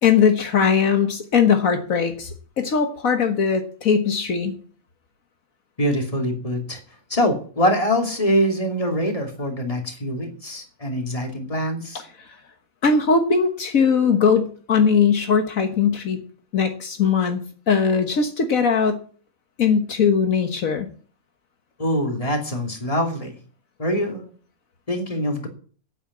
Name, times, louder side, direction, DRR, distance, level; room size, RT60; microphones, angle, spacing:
voice 1, 0.0-4.5 12.8-16.2 16.5-17.4 17.7-19.0 19.6-20.9, left 6 dB, 75° left, 6 dB, 1.7 m, -20 dB
voice 2, 5.8-6.8 7.1-12.0 21.8-23.4 23.8-24.3 24.9-25.5, equal, 25° left, 3 dB, 2.8 m, -24 dB
9.0 x 8.8 x 9.6 m, 0.43 s
omnidirectional pair, 1.5 m